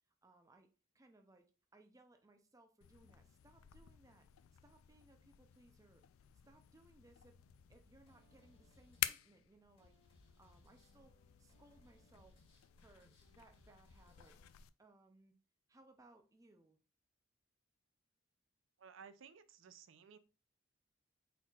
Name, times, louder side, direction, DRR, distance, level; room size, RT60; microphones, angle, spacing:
voice 1, 0.2-0.7 0.9-4.3 4.6-6.0 6.4-7.4 7.7-10.0 10.4-11.1 11.4-12.4 12.8-14.4 14.8-15.3 15.7-16.8, right 2 dB, 15° right, 6 dB, 0.5 m, -66 dB
sound 1, 2.8-14.7, left 13 dB, 90° left, 0.3 m, -50 dB
sound 2, 7.3-14.5, left 1 dB, 30° left, 1.6 m, -70 dB
voice 2, 18.8-20.2, right 6 dB, 65° right, 12 dB, 0.4 m, -57 dB
4.5 x 4.1 x 2.3 m, 0.34 s
head